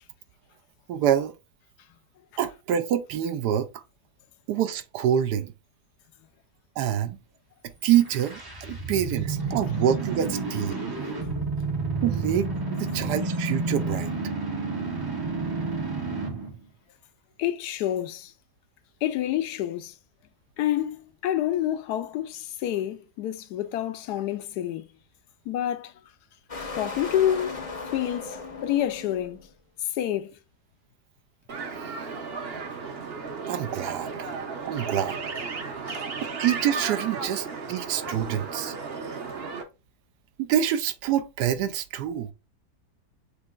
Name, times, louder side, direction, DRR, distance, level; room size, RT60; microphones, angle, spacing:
voice 1, 0.9-1.3 2.4-3.8 4.5-5.5 6.8-7.2 7.8-10.8 12.0-14.1 33.5-34.1 34.7-35.2 36.2-38.7 40.4-42.3, right 10 dB, 80° right, 1.2 m, -26 dB
sound 1, 7.9-16.5, right 3 dB, 30° right, 0.4 m, -30 dB
voice 2, 17.4-18.3 19.0-19.9 20.6-24.9 25.5-25.9 26.6-27.6 27.9-29.4 29.8-30.4 35.9-36.0, left 11 dB, 75° left, 1.1 m, -28 dB
sound 2, 26.5-29.5, left 3 dB, 35° left, 0.6 m, -37 dB
sound 3, 31.5-39.6, right 4 dB, 50° right, 0.8 m, -34 dB
6.5 x 3.0 x 2.4 m
omnidirectional pair, 1.8 m